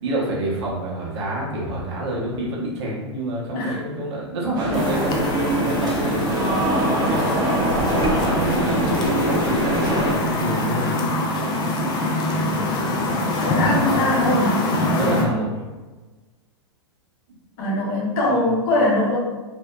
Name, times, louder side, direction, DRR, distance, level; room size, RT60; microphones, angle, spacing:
voice 1, 0.0-7.2 7.9-10.9 15.0-15.5 18.2-18.5, right 1 dB, 65° right, -4 dB, 0.9 m, -28 dB
sound 1, 4.5-10.1, right 1 dB, 25° right, 0.7 m, -23 dB
sound 2, 4.7-15.2, left 1 dB, 30° left, 0.4 m, -24 dB
voice 2, 13.4-14.6 17.6-19.2, left 2 dB, 55° left, -4 dB, 0.9 m, -22 dB
2.7 x 2.1 x 2.2 m, 1.2 s
hypercardioid pair, 105°, 15 cm